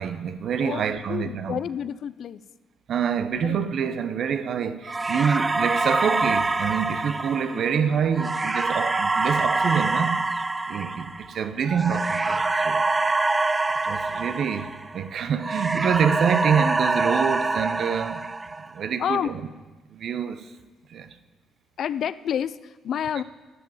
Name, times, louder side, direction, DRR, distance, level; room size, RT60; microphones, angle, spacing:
voice 1, 0.0-1.6 2.9-10.2 10.7-12.8 13.8-18.3 18.7-19.4 19.9-20.5 20.9-21.1, right 7 dB, 65° right, 0.7 m, -26 dB
voice 2, 0.6-2.4 3.4-3.7 7.5-7.9 19.0-19.3 21.8-23.2, left 9 dB, 65° left, 0.4 m, -29 dB
sound 1, 4.9-15.1 15.4-18.8, right 3 dB, 25° right, 0.4 m, -25 dB
11.0 x 6.0 x 9.1 m
cardioid pair, 90°, 0 cm